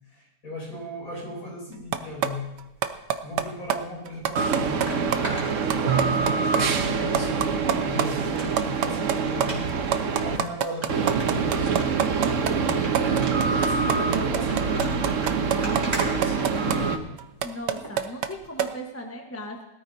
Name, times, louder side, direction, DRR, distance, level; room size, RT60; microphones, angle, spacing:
voice 1, 0.1-2.5 3.2-5.0 5.5-9.7 10.1-11.8 12.5-14.9 15.3-17.1, left 1 dB, 55° left, -4 dB, 6.4 m, -37 dB
sound 1, 1.9-2.3 2.6-3.4 3.7-3.8 4.1-4.9 5.1-5.2 5.5-6.6 6.9-7.0 7.1-8.0 8.4-16.8 17.2-18.3 18.6-18.7, right 9 dB, 75° right, 1.4 m, -24 dB
sound 2, 4.4-10.4 10.9-17.0, right 5 dB, 55° right, 1.1 m, -25 dB
sound 3, 4.8-6.3 6.8-7.4 7.7-7.8 8.2-8.7 9.4-9.6 10.3-10.4 10.8-10.9 11.2-12.3 12.7-12.9 13.2-13.5 14.3-16.9 17.7-17.9 18.4-18.5, right 1 dB, 20° right, 4.0 m, -37 dB
voice 2, 17.4-19.7, equal, 10° left, 1 dB, 1.1 m, -37 dB
20.0 x 13.5 x 2.7 m, 0.96 s
omnidirectional pair, 1.9 m